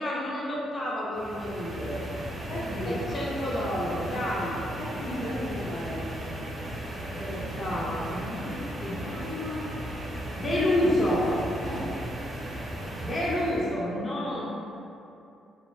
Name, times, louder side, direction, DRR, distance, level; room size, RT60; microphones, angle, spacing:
voice 1, 0.0-2.0 2.8-4.6 7.0-9.6 10.4-11.3 13.0-14.5, left 1 dB, 35° left, -6 dB, 0.4 m, -29 dB
sound 1, 1.1-13.8, right 1 dB, 40° right, 0.5 m, -36 dB
voice 2, 2.5-3.0 4.8-6.2 11.6-11.9, left 1 dB, 90° left, -9 dB, 0.7 m, -35 dB
2.2 x 2.1 x 3.0 m, 2.7 s
cardioid pair, 90°, 0 cm